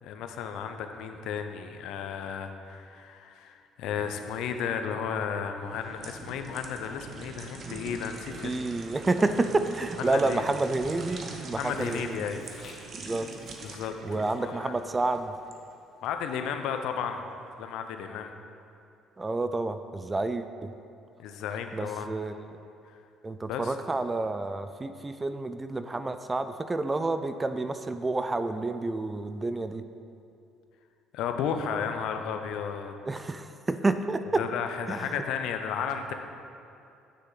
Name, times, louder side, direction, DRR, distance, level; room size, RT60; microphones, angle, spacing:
voice 1, 0.0-8.6 10.1-10.4 11.6-12.5 13.6-14.7 16.0-17.2 17.6-18.3 21.2-22.1 22.8-23.0 23.5-23.7 31.1-32.9 34.4-36.1, left 7 dB, 70° left, 6 dB, 0.6 m, -33 dB
sound 1, 5.6-15.6 16.0-16.2, right 4 dB, 50° right, 1.0 m, -43 dB
voice 2, 8.4-12.2 12.9-13.3 14.0-15.4 19.2-20.7 21.7-22.3 23.2-29.8 33.1-34.4 34.9-35.2, right 2 dB, 25° right, 10 dB, 0.4 m, -29 dB
Walk footsteps, 9.1-16.2, left 3 dB, 55° left, 1.1 m, -52 dB
9.8 x 6.4 x 3.9 m, 2.7 s
hypercardioid pair, 60°, 0 cm